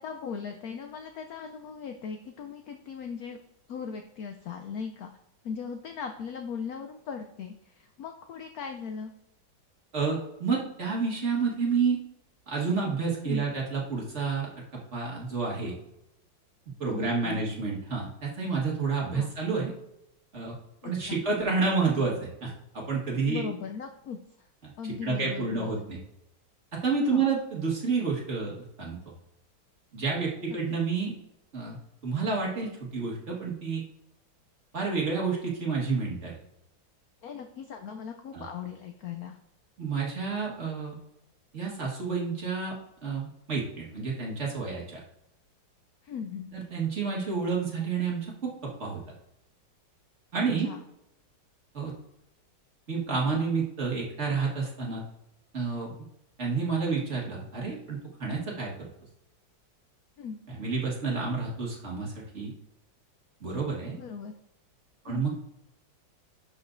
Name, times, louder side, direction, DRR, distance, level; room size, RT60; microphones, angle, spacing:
voice 1, 0.0-3.4 3.7-5.1 5.4-9.1 13.2-13.4 16.9-17.4 19.1-19.3 20.8-21.2 23.3-24.5 24.8-25.9 27.1-27.2 30.5-30.6 37.2-39.4 46.0-46.5 50.6-50.8 60.2-60.4 63.9-64.3 65.0-65.2, left 6 dB, 75° left, 6 dB, 0.8 m, -38 dB
voice 2, 9.9-12.0 12.5-15.8 16.8-19.7 20.3-20.5 20.8-23.4 24.6-24.7 25.0-26.0 26.7-29.0 29.9-31.1 31.5-31.8 32.0-33.8 34.7-36.4 38.3-38.4 39.8-40.9 41.5-42.7 43.0-45.0 46.5-49.0 50.3-50.7 51.7-51.9 52.9-55.0 55.5-55.9 56.4-58.7 60.6-62.5 63.4-64.0 65.1-65.3, right 4 dB, 40° right, -2 dB, 1.7 m, -29 dB
11.5 x 5.0 x 2.6 m, 0.83 s
omnidirectional pair, 2.1 m